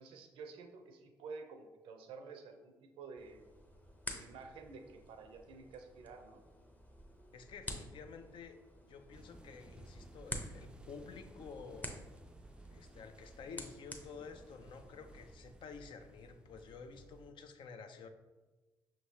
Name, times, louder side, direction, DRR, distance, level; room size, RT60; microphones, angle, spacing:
voice 1, 0.0-3.4 4.0-6.4, right 4 dB, 75° right, 6 dB, 0.5 m, -51 dB
sound 1, 3.2-15.3, left 1 dB, 15° left, 0.7 m, -50 dB
voice 2, 7.3-8.6 8.9-12.1 12.7-18.1, left 5 dB, 60° left, 7 dB, 0.4 m, -51 dB
sound 2, 9.1-17.3, right 2 dB, 10° right, 0.3 m, -58 dB
5.6 x 3.0 x 2.7 m, 1.2 s
hypercardioid pair, 50°, 9 cm